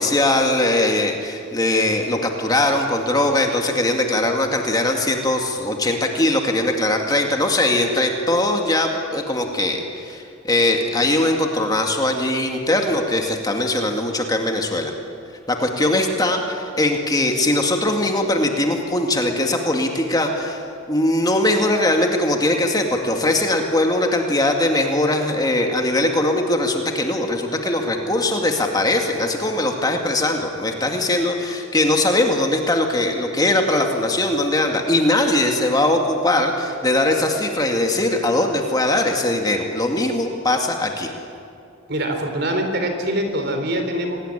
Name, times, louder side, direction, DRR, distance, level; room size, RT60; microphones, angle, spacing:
voice 1, 0.0-14.9 15.5-41.1, left 1 dB, 20° left, 2 dB, 2.1 m, -20 dB
voice 2, 41.9-44.2, right 1 dB, 55° right, 5 dB, 4.0 m, -24 dB
26.0 x 19.0 x 10.0 m, 2.5 s
head